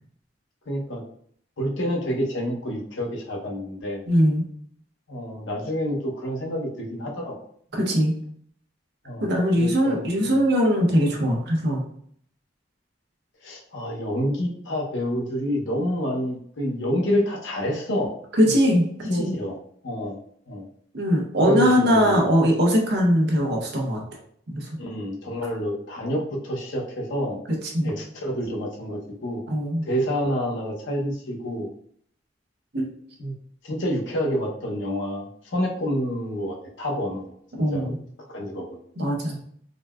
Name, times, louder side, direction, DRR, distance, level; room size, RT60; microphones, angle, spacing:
voice 1, 0.7-1.0 1.6-4.0 5.1-7.3 9.0-9.3 9.6-10.4 13.4-18.1 19.1-19.6 19.8-20.2 20.5-20.6 21.4-22.3 24.8-27.4 27.8-29.4 29.9-31.7 33.2-33.3 33.6-37.9 38.3-38.8, equal, 90° left, -1 dB, 0.8 m, -28 dB
voice 2, 4.1-4.4 7.7-8.1 9.2-11.8 18.3-19.4 20.9-24.0 24.5-24.7 27.7-27.9 29.5-29.8 32.7-32.8 37.5-38.0 39.0-39.4, equal, 60° right, 0 dB, 0.8 m, -21 dB
3.8 x 2.2 x 2.2 m, 0.63 s
head